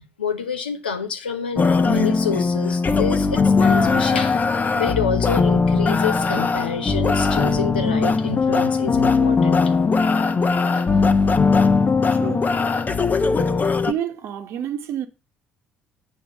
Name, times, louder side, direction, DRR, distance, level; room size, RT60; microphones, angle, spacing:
voice 1, 0.2-4.4 4.7-9.6, left 6 dB, 90° left, 0.9 m, -28 dB
sound 1, 1.6-13.9, left 4 dB, 35° left, 0.9 m, -19 dB
voice 2, 12.1-12.5 13.8-15.1, right 10 dB, 60° right, 1.1 m, -29 dB
8.6 x 4.6 x 6.9 m
figure-of-eight pair, 50°, 5 cm